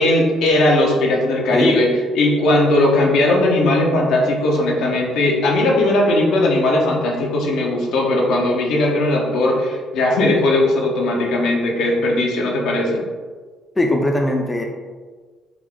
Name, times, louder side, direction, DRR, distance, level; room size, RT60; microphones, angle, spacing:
voice 1, 0.0-1.9 2.1-13.0, left 1 dB, 75° left, -1 dB, 0.7 m, -18 dB
voice 2, 13.8-14.6, left 1 dB, 15° left, 1 dB, 0.5 m, -19 dB
3.5 x 2.4 x 3.5 m, 1.5 s
supercardioid pair, 70°, 0 cm